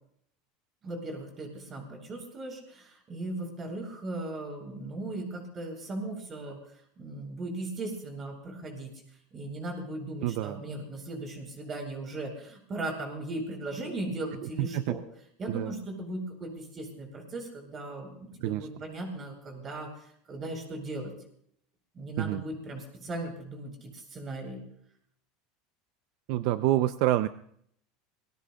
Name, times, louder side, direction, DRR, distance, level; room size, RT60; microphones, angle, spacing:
voice 1, 0.8-6.6 7.0-9.0 9.3-15.0 15.4-19.9 20.3-21.1 21.9-24.6, right 2 dB, 30° right, 1 dB, 7.7 m, -38 dB
voice 2, 10.2-10.6 14.4-15.0 15.5-15.7 18.4-18.7 22.2-22.4 26.3-27.3, right 14 dB, 65° right, 12 dB, 0.5 m, -27 dB
27.5 x 21.5 x 2.3 m, 0.68 s
supercardioid pair, 130°, 0 cm